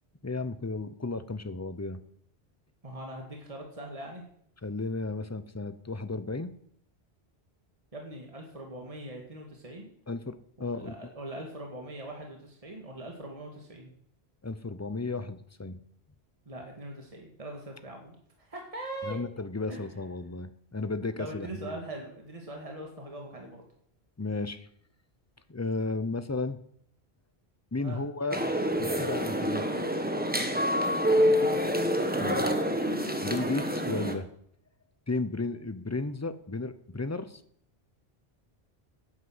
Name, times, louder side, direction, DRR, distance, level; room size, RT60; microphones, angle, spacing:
voice 1, 0.2-2.0 4.6-6.5 10.1-10.9 14.4-15.8 19.1-21.8 24.2-24.7 25.5-26.6 27.7-28.4 28.8-29.6 32.2-32.6 33.2-34.3 35.1-37.4, left 3 dB, 15° left, 12 dB, 0.8 m, -34 dB
voice 2, 2.8-4.2 7.9-9.9 10.7-13.9 16.5-19.2 19.7-20.0 21.2-23.6 27.8-28.0 31.1-31.8, right 1 dB, 35° right, 1 dB, 2.2 m, -41 dB
sound 1, 28.3-34.1, equal, 10° right, 1.4 m, -27 dB
11.0 x 9.6 x 8.0 m, 0.69 s
omnidirectional pair, 1.1 m